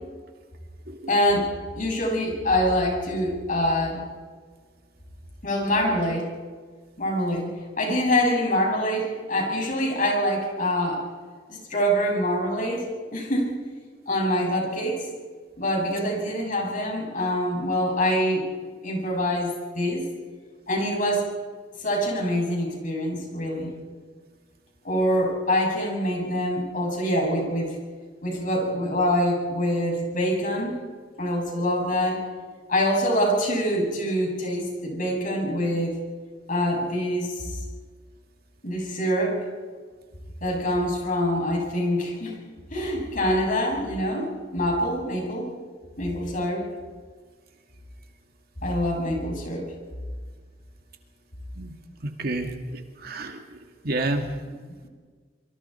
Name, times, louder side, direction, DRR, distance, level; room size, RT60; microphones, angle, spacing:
voice 1, 1.1-1.5 1.8-4.1 5.4-6.3 7.0-11.1 11.5-13.5 14.1-15.1 15.6-18.5 18.8-20.0 20.7-21.3 21.8-23.7 24.8-27.8 28.2-30.8 31.2-32.2 32.7-36.0 36.5-37.6 38.6-39.4 40.4-42.4 42.7-45.5 46.0-46.7 48.6-49.7, equal, 45° left, 0 dB, 7.1 m, -25 dB
voice 2, 52.2-53.4 53.8-54.3, right 2 dB, 55° right, 4 dB, 2.2 m, -29 dB
26.5 x 24.5 x 4.5 m, 1.5 s
head